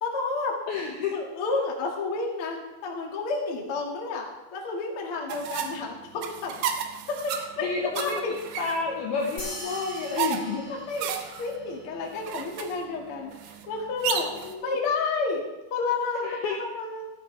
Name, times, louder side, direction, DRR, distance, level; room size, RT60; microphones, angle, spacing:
voice 1, 0.0-0.5 1.1-6.5 7.1-7.7 8.0-8.3 8.9-9.0 10.7-14.3 14.6-17.1, left 4 dB, 45° left, -1 dB, 1.8 m, -31 dB
voice 2, 0.7-1.2 7.6-10.7 14.3-14.8 16.2-16.6, left 4 dB, 70° left, -1 dB, 2.5 m, -30 dB
sound 1, 5.3-14.5, right 8 dB, 75° right, 2.7 m, -34 dB
sound 2, 9.4-12.1, left 1 dB, 20° left, 4.7 m, -41 dB
15.0 x 15.0 x 3.4 m, 1.1 s
omnidirectional pair, 5.9 m